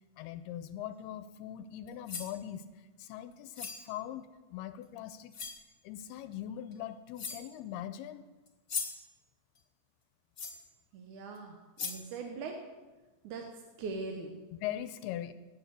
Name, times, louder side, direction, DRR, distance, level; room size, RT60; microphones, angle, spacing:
voice 1, 0.2-5.5 5.8-8.3 14.5-15.3, left 11 dB, 80° left, 12 dB, 2.5 m, -41 dB
sound 1, 1.9-2.4 3.5-3.9 4.8-4.9 5.3-5.6 6.7-6.8 7.2-7.6 8.5-9.1 10.4-10.7 11.3-11.4 11.8-12.1, left 5 dB, 55° left, 0.9 m, -39 dB
voice 2, 10.9-11.5 11.8-12.6 13.2-13.4 13.8-14.4, right 4 dB, 60° right, 3 dB, 2.3 m, -40 dB
18.5 x 9.3 x 8.2 m, 1.2 s
omnidirectional pair, 4.8 m